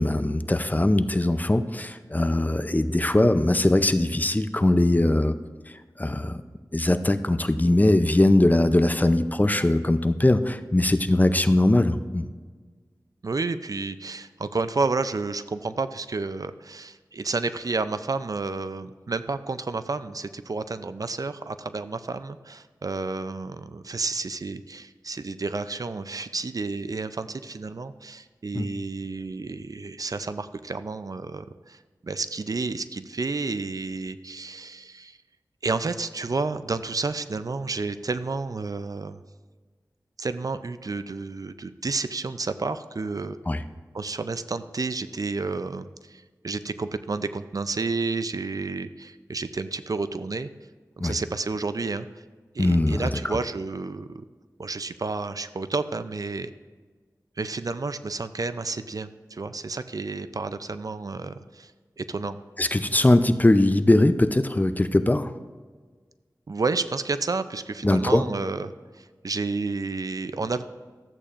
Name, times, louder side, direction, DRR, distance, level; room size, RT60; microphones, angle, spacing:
voice 1, 0.0-5.3 5.7-6.4 6.7-12.3 28.5-28.7 43.5-43.6 51.0-51.1 52.6-53.4 62.6-65.3 67.8-68.2, left 1 dB, 25° left, 11 dB, 0.5 m, -21 dB
voice 2, 13.2-35.2 35.6-39.2 40.2-43.4 43.9-50.5 51.0-52.1 52.5-54.2 54.6-56.5 57.4-61.7 62.0-62.4 66.5-70.6, right 3 dB, 55° right, 12 dB, 0.5 m, -31 dB
13.5 x 8.4 x 2.5 m, 1.5 s
cardioid pair, 40°, 7 cm